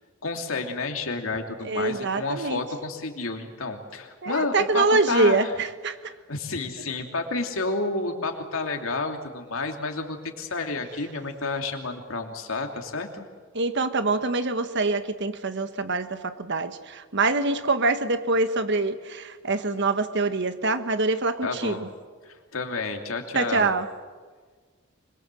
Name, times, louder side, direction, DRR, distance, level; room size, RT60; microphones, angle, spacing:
voice 1, 0.2-5.5 6.0-13.3 21.4-21.9 22.2-23.7, left 3 dB, 85° left, 4 dB, 2.9 m, -30 dB
voice 2, 1.6-2.6 4.2-6.0 13.5-21.9 23.3-23.9, right 3 dB, 60° right, 10 dB, 1.4 m, -25 dB
25.5 x 22.0 x 7.7 m, 1.5 s
head